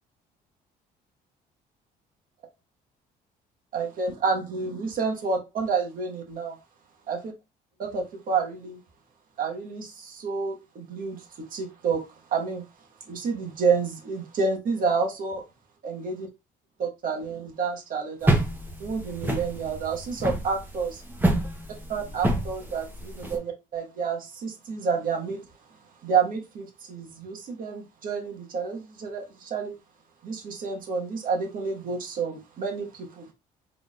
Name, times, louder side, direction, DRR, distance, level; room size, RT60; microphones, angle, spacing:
voice 1, 3.7-6.6 7.1-7.3 7.8-8.8 9.4-12.0 12.3-12.6 13.0-15.4 15.8-16.3 16.8-18.4 18.8-21.0 21.9-25.4 26.0-29.7 30.2-33.3, right 5 dB, 55° right, 1.5 m, -29 dB
sound 1, 18.2-23.3, right 1 dB, 10° right, 1.1 m, -27 dB
4.2 x 3.7 x 2.5 m
cardioid pair, 110°, 17 cm